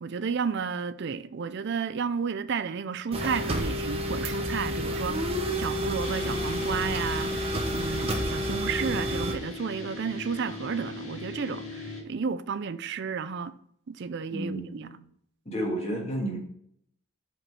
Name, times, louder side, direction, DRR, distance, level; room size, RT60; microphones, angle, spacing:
voice 1, 0.0-13.5 13.9-14.9, right 6 dB, 55° right, 0.4 m, -32 dB
sound 1, 3.1-9.3, equal, 25° right, 0.8 m, -30 dB
sound 2, 6.0-12.0, left 2 dB, 70° left, 1.9 m, -39 dB
voice 2, 14.3-15.0 15.5-16.4, right 1 dB, 30° left, 1.8 m, -31 dB
5.8 x 5.2 x 4.7 m
head